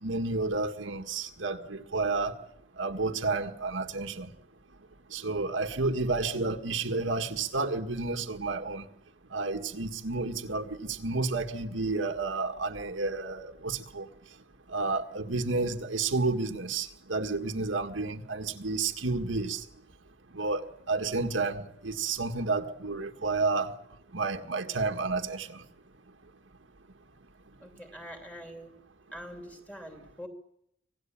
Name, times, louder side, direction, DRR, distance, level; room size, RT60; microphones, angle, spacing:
voice 1, 0.0-2.3 2.8-4.3 5.1-8.9 9.3-14.1 14.7-19.6 20.3-23.7 24.1-25.6, right 3 dB, 90° right, 1.8 m, -31 dB
voice 2, 27.6-28.8 29.1-30.3, equal, 5° left, 2.8 m, -44 dB
25.5 x 18.0 x 8.8 m
head